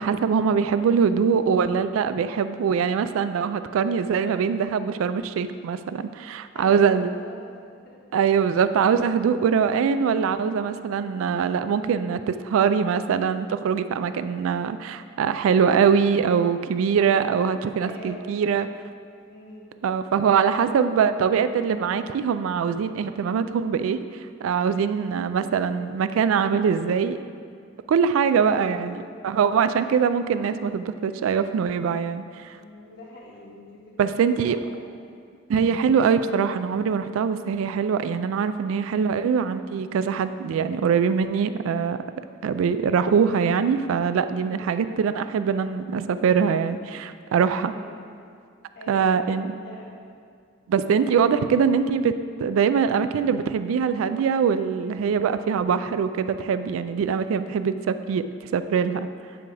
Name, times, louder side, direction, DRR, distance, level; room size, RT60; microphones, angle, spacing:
voice 1, 0.0-7.1 8.1-18.7 19.8-27.2 27.9-32.6 34.0-34.6 35.5-42.0 42.4-47.7 48.9-49.5 50.7-58.2 58.5-59.1, right 6 dB, 80° right, 11 dB, 0.3 m, -23 dB
voice 2, 6.5-7.4 7.8-8.0 17.8-18.6 19.3-19.7 20.2-21.0 28.3-29.1 32.5-34.8 38.6-39.0 44.4-44.7 47.5-48.0 48.7-50.0, left 1 dB, 55° left, -5 dB, 1.5 m, -43 dB
9.1 x 3.3 x 4.7 m, 2.2 s
head